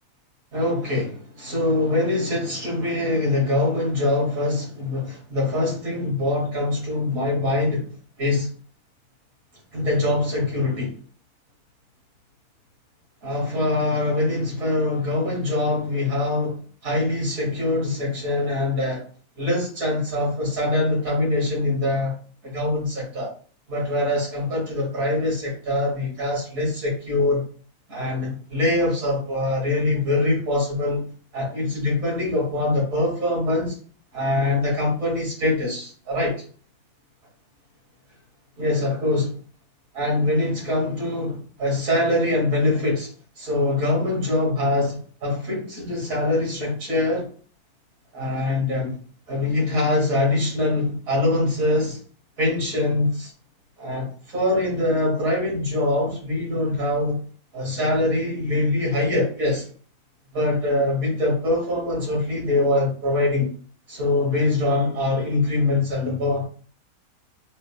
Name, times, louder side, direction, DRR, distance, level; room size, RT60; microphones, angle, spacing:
voice 1, 0.5-7.9 8.2-8.5 9.7-10.9 13.2-19.0 19.4-22.1 22.4-23.3 23.7-27.4 27.9-31.1 31.3-33.8 34.1-36.4 38.6-39.3 39.9-43.1 43.4-47.3 48.1-48.9 49.3-52.0 52.4-53.3 53.8-57.2 57.5-59.7 60.3-63.5 63.9-66.5, left 2 dB, 70° right, -3 dB, 2.2 m, -23 dB
4.2 x 2.1 x 3.4 m, 0.43 s
omnidirectional pair, 1.5 m